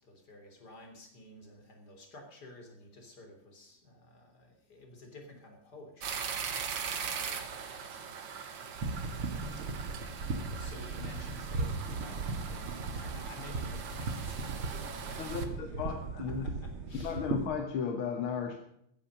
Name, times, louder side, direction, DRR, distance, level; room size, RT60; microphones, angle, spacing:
voice 1, 0.0-9.4 10.2-17.2, left 2 dB, 50° left, 4 dB, 3.9 m, -52 dB
sound 1, 6.0-15.5, right 7 dB, 60° right, 2.1 m, -41 dB
sound 2, 8.7-17.5, right 3 dB, 80° right, 2.7 m, -37 dB
voice 2, 15.2-16.5 17.0-18.6, left 6 dB, 75° left, 5 dB, 2.1 m, -35 dB
15.0 x 10.0 x 6.6 m, 0.75 s
omnidirectional pair, 2.3 m